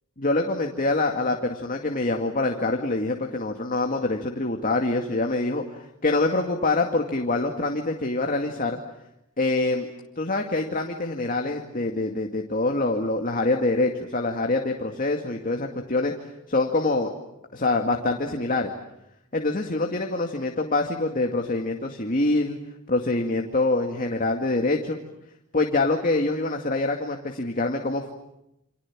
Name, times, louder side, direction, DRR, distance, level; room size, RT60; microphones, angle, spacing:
voice 1, 0.2-8.8 9.4-9.9 10.2-16.1 16.5-17.1 17.5-18.7 19.3-22.6 22.9-25.0 25.5-28.1, left 2 dB, 40° left, 3 dB, 2.2 m, -25 dB
29.0 x 27.0 x 7.4 m, 0.86 s
head